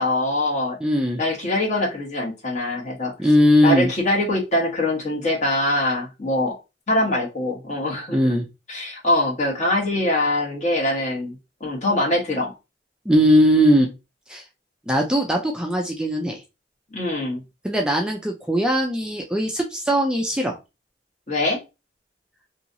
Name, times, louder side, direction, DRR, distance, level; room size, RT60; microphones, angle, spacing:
voice 1, 0.0-0.8 1.2-3.1 3.6-6.6 6.9-8.3 8.7-11.3 11.6-12.5 16.9-17.4 21.3-21.6, left 1 dB, 40° left, -1 dB, 1.2 m, -23 dB
voice 2, 0.8-1.2 3.2-3.9 8.1-8.5 13.1-13.9 14.3-14.4 14.9-16.4 17.6-20.6, equal, 5° right, 1 dB, 0.4 m, -19 dB
2.9 x 2.7 x 2.6 m, 0.27 s
head